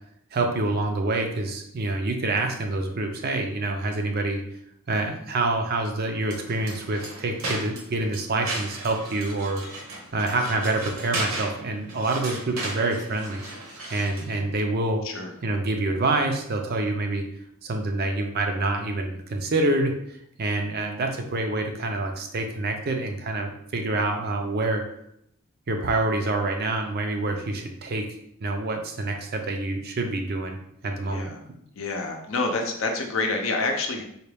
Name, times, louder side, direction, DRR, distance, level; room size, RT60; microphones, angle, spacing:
voice 1, 0.3-4.4 4.9-9.6 10.1-13.4 13.9-15.0 15.4-17.2 17.6-19.9 20.4-24.8 25.7-28.1 28.4-30.6 30.8-31.3, right 2 dB, 45° right, 4 dB, 0.5 m, -26 dB
sound 1, 6.2-14.3, right 2 dB, 65° right, 0.8 m, -36 dB
voice 2, 31.1-31.4 31.7-34.0, left 3 dB, 60° left, 3 dB, 0.6 m, -27 dB
4.2 x 2.3 x 3.3 m, 0.73 s
head